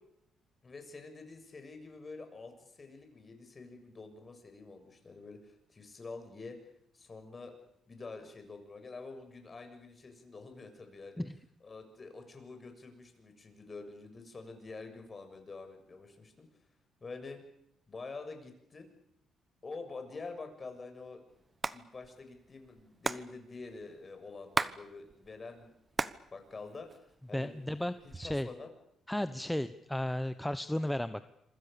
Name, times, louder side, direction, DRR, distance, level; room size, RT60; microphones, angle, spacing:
voice 1, 0.6-6.6 6.9-7.5 7.9-11.2 11.6-16.5 17.0-17.4 17.9-18.9 19.6-21.2 21.7-27.8 28.2-28.7, left 3 dB, 35° left, 6 dB, 7.0 m, -47 dB
Hands, 21.4-21.8 22.0-22.1 22.3-24.8 25.1-26.2 26.6-27.4 27.9-28.5, right 3 dB, 25° right, 1.1 m, -35 dB
voice 2, 27.3-28.5 29.1-31.3, left 1 dB, 5° left, 11 dB, 1.0 m, -34 dB
26.5 x 25.0 x 6.9 m, 0.76 s
cardioid pair, 90°, 0 cm